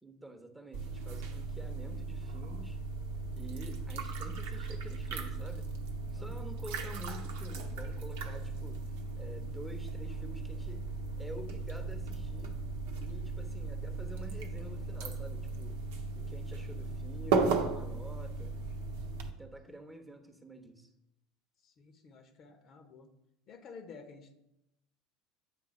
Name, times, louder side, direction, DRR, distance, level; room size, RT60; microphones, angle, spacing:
voice 1, 0.0-2.8 3.3-5.7 6.1-8.8 9.2-10.8 11.2-12.6 13.0-15.8 16.2-18.6 19.4-20.9, right 1 dB, 10° right, 5 dB, 1.0 m, -49 dB
sound 1, 0.7-19.3, right 4 dB, 65° right, 0.9 m, -36 dB
voice 2, 21.6-23.1 23.5-24.3, left 5 dB, 45° left, 7 dB, 1.0 m, -52 dB
8.7 x 3.7 x 4.8 m, 0.86 s
figure-of-eight pair, 70°, 0 cm